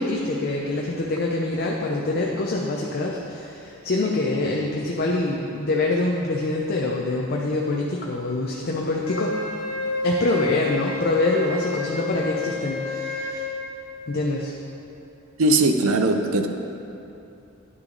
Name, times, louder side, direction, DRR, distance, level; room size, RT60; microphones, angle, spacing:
voice 1, 0.0-9.3 10.0-13.4 14.1-14.5, left 2 dB, 45° left, -2 dB, 0.6 m, -25 dB
Wind instrument woodwind instrument, 9.0-13.5, left 3 dB, 30° left, 1.7 m, -30 dB
voice 2, 15.4-16.5, right 2 dB, 80° right, 6 dB, 0.6 m, -19 dB
10.5 x 5.9 x 3.9 m, 2.8 s
head